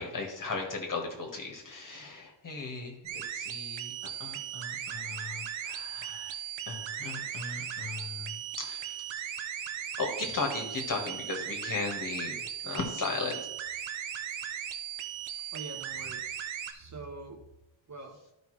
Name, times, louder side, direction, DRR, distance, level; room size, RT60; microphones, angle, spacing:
voice 1, 0.0-6.4 6.7-9.0 10.0-12.3 12.6-13.4, left 3 dB, 40° left, 1 dB, 1.6 m, -37 dB
sound 1, 3.1-16.7, right 9 dB, 65° right, 0.8 m, -38 dB
voice 2, 15.5-17.5 17.9-18.2, right 3 dB, 35° right, 2 dB, 1.1 m, -45 dB
13.0 x 5.1 x 3.2 m, 0.89 s
wide cardioid pair, 160°, 49 cm